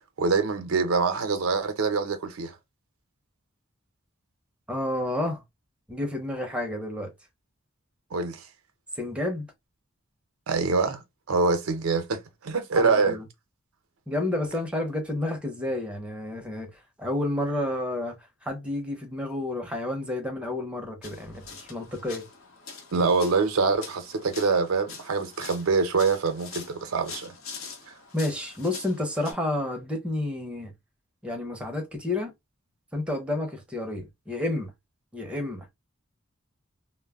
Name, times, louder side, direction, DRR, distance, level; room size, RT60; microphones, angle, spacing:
voice 1, 0.2-2.5 8.1-8.4 10.5-11.0 11.3-13.2 22.9-27.3, right 4 dB, 90° right, 0.6 m, -25 dB
voice 2, 4.7-5.4 5.9-7.1 9.0-9.5 12.7-13.2 14.1-18.2 18.4-22.3 28.1-30.7 31.2-32.3 32.9-34.7 35.1-35.7, left 1 dB, 5° right, 0.6 m, -30 dB
sound 1, 21.0-29.3, left 5 dB, 75° left, 0.8 m, -44 dB
2.1 x 2.0 x 3.4 m
head